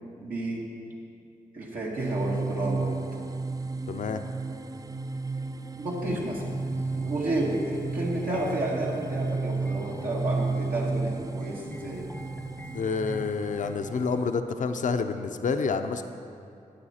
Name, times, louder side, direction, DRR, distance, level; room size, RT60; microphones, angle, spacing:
voice 1, 0.2-0.7 1.5-3.0 5.8-6.5 6.9-12.1, right 1 dB, 85° right, -4 dB, 2.0 m, -31 dB
sound 1, 2.0-14.4, right 3 dB, 25° right, 0.3 m, -33 dB
voice 2, 3.9-4.2 12.7-16.0, left 5 dB, 65° left, 7 dB, 0.5 m, -28 dB
sound 2, 6.0-14.2, left 1 dB, 10° left, 0.6 m, -45 dB
11.5 x 8.3 x 4.3 m, 2.5 s
cardioid pair, 50°, 14 cm